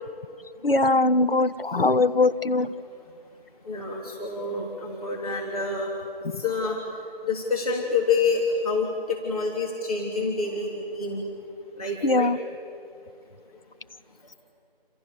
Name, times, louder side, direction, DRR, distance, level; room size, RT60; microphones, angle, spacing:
voice 1, 0.6-2.7 12.0-12.4, left 2 dB, 70° left, 13 dB, 1.1 m, -21 dB
voice 2, 3.7-5.9 6.4-6.8 7.3-11.2 11.8-12.3, left 4 dB, 40° left, -1 dB, 3.3 m, -27 dB
28.5 x 27.0 x 7.0 m, 2.5 s
figure-of-eight pair, 165°, 29 cm